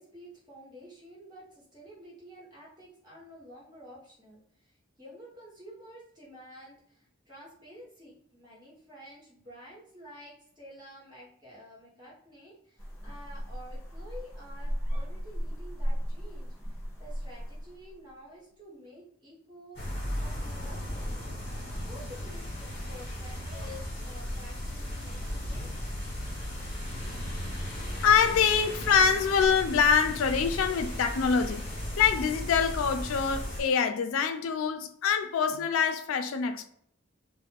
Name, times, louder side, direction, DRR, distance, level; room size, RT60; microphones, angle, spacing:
voice 1, 0.0-19.8 20.2-21.2 21.9-25.7, equal, 20° right, 1.3 m, -50 dB
sound 1, 12.8-18.1, equal, 15° left, 0.7 m, -35 dB
sound 2, 19.7-33.6, equal, 30° left, 1.2 m, -36 dB
voice 2, 28.0-31.6 32.0-36.7, left 6 dB, 90° left, 0.3 m, -25 dB
2.4 x 2.1 x 3.4 m
head